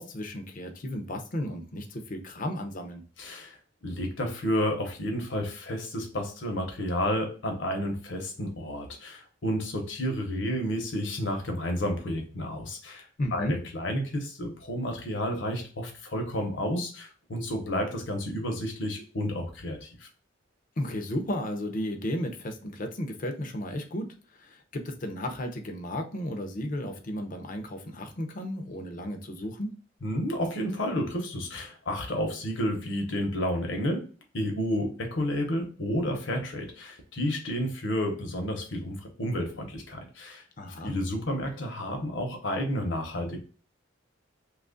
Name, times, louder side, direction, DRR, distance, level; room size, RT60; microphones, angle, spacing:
voice 1, 0.0-3.0 13.2-13.6 20.8-29.7 40.6-41.0, left 1 dB, 45° left, 5 dB, 0.6 m, -34 dB
voice 2, 3.2-3.6 3.8-20.1 30.0-34.0 34.3-40.4 40.8-43.4, equal, 70° left, 3 dB, 0.9 m, -31 dB
3.0 x 2.4 x 3.7 m, 0.38 s
head